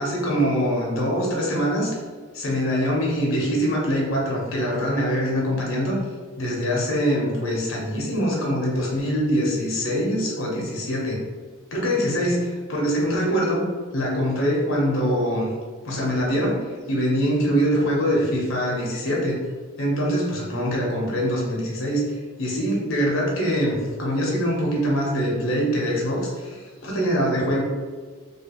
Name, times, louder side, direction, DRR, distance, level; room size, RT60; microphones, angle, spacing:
voice 1, 0.0-1.9 2.3-6.0 6.4-11.2 11.7-13.6 13.9-15.5 15.8-19.3 19.8-22.0 22.4-27.6, equal, 75° left, -2 dB, 0.9 m, -23 dB
3.1 x 2.5 x 2.9 m, 1.5 s
head